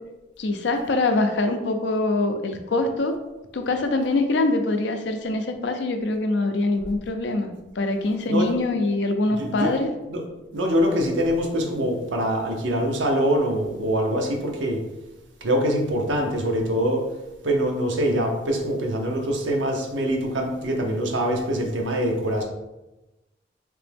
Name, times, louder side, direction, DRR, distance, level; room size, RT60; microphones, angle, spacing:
voice 1, 0.4-3.1 3.5-7.5 7.8-9.9, left 2 dB, 70° left, 6 dB, 0.4 m, -24 dB
voice 2, 9.3-9.8 10.1-10.2 10.5-14.8 15.4-17.0 17.4-22.4, equal, 80° right, 2 dB, 0.7 m, -24 dB
3.4 x 2.9 x 3.4 m, 1.0 s
head